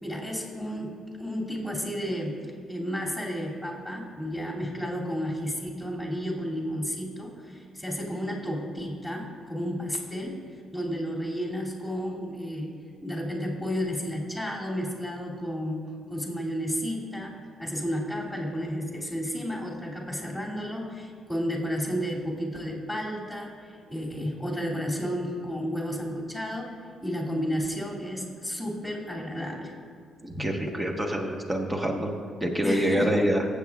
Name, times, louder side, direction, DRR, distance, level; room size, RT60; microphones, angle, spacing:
voice 1, 0.0-2.4 2.7-10.4 10.7-12.7 13.0-15.8 16.1-26.7 27.0-29.7 32.6-33.2, equal, ahead, -4 dB, 2.6 m, -32 dB
voice 2, 30.2-32.1 32.4-33.4, equal, 20° right, 2 dB, 1.3 m, -26 dB
15.0 x 8.3 x 2.4 m, 2.2 s
cardioid pair, 90°, 0 cm